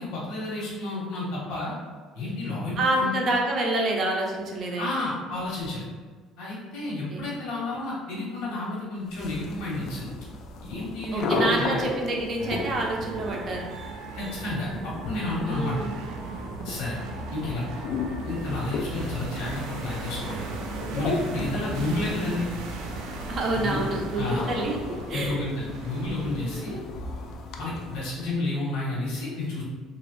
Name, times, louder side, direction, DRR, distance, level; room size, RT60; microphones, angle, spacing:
voice 1, 0.0-1.7 2.1-3.1 4.8-5.8 6.4-10.1 10.6-11.8 14.1-15.8 16.6-17.0 17.3-17.8 18.3-20.5 20.9-22.5 23.5-23.8 24.2-24.4 25.1-26.8 27.6-29.6, left 2 dB, 80° left, -6 dB, 1.1 m, -31 dB
voice 2, 2.8-4.9 6.9-7.3 11.1-13.7 15.5-15.9 21.5-21.7 23.3-24.8 25.1-25.4 26.3-26.8, right 2 dB, 40° right, 0 dB, 0.6 m, -28 dB
sound 1, 9.1-28.4, left 3 dB, 55° left, 0.3 m, -35 dB
sound 2, 12.4-26.8, right 3 dB, 85° right, 0.4 m, -38 dB
3.0 x 2.4 x 3.1 m, 1.4 s
cardioid pair, 155°, 0 cm